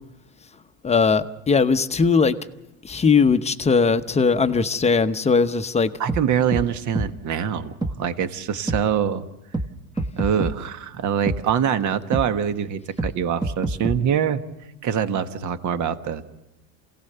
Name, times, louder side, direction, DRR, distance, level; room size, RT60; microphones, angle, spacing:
voice 1, 0.8-2.4 2.8-5.9, left 5 dB, 15° left, 9 dB, 0.9 m, -19 dB
voice 2, 6.0-9.2 10.2-14.4 14.8-16.2, right 8 dB, 40° right, 9 dB, 1.5 m, -24 dB
sound 1, 6.1-6.2 6.5-6.7 6.9-7.1 7.8-7.9 8.7-8.8 9.5-9.7 10.0-10.5 11.3-11.4 12.1-12.3 13.0-13.1 13.4-14.0, right 2 dB, 10° right, 1.1 m, -25 dB
27.5 x 17.5 x 6.8 m, 0.95 s
supercardioid pair, 115°, 43 cm